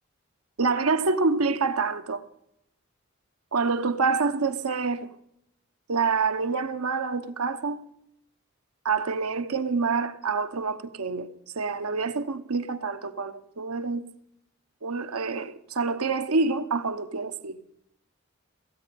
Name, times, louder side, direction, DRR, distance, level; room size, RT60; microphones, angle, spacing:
voice 1, 0.6-2.2 3.5-5.1 5.9-7.8 8.8-11.3 11.6-14.0 14.8-17.6, right 4 dB, 90° right, 1.0 m, -27 dB
16.0 x 8.8 x 7.0 m
head